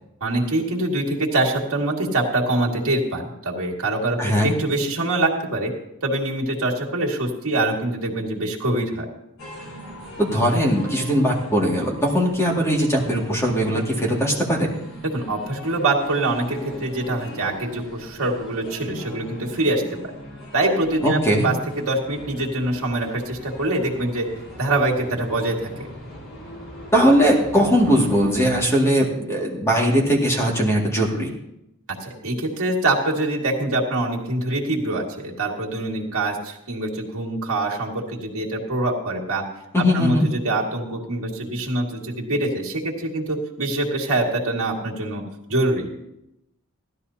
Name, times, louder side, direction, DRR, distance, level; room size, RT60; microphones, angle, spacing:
voice 1, 0.2-5.7 6.0-9.1 15.1-19.8 20.5-24.3 24.6-25.7 32.0-39.4 39.9-45.2 45.5-45.9, right 2 dB, 75° right, -2 dB, 2.1 m, -24 dB
voice 2, 4.2-4.5 10.2-14.7 21.0-21.5 26.9-31.3 39.7-40.2, equal, 10° left, -1 dB, 2.2 m, -20 dB
sound 1, 9.4-28.6, equal, 65° left, 4.7 m, -40 dB
16.5 x 13.0 x 2.8 m, 0.85 s
head